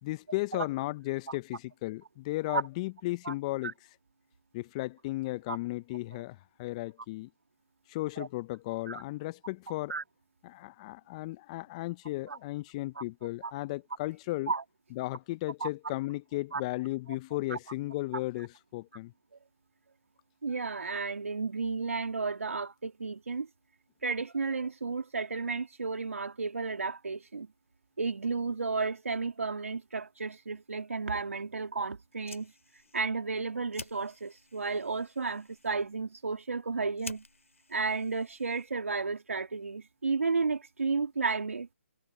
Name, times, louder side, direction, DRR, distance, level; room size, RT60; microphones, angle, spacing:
voice 1, 0.0-3.7 4.5-7.3 7.9-9.9 10.4-14.5 14.9-19.1, left 19 dB, 30° left, 0.9 m, -35 dB
voice 2, 20.4-23.5 24.0-27.5 28.0-32.5 32.9-37.2 37.7-41.7, right 4 dB, 75° right, 2.4 m, -33 dB
Fire, 32.0-39.0, left 3 dB, 85° left, 2.9 m, -51 dB
figure-of-eight pair, 145°, 7 cm